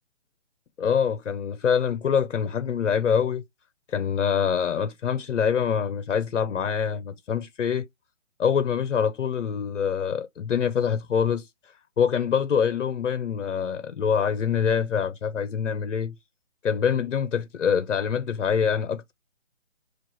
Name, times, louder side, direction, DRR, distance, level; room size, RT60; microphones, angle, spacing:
voice 1, 0.8-3.4 3.9-7.9 8.4-11.5 12.0-16.1 16.6-19.1, left 7 dB, 75° left, 0.7 m, -25 dB
6.1 x 2.4 x 2.2 m
hypercardioid pair, 160°, 37 cm